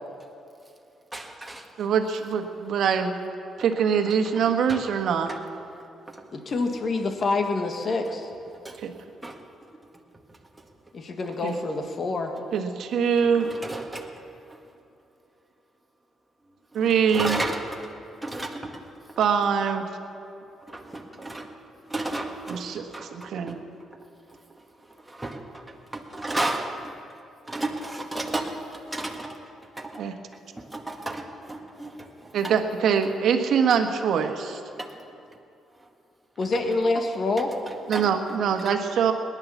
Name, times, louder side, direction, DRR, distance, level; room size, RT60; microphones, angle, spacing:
voice 1, 1.1-1.9 4.1-4.8 5.3-5.4 5.8-6.6 8.5-8.9 9.2-10.9 11.2-11.4 13.2-14.7 16.7-19.2 20.6-27.2 27.5-32.6 33.0-33.1 34.8-35.2 35.7-35.9 36.6-37.1 37.4-38.7, right 2 dB, 10° right, 2 dB, 1.8 m, -36 dB
voice 2, 1.8-3.2 3.6-5.3 8.8-8.9 11.4-11.6 12.5-13.5 16.7-17.4 19.2-19.8 22.5-22.8 23.1-23.6 30.0-30.1 32.3-34.6 37.9-39.1, right 7 dB, 70° right, 6 dB, 1.4 m, -23 dB
voice 3, 6.3-8.3 10.9-12.3 36.4-37.5, left 3 dB, 45° left, 5 dB, 1.7 m, -26 dB
18.5 x 10.5 x 7.1 m, 2.7 s
cardioid pair, 90°, 0 cm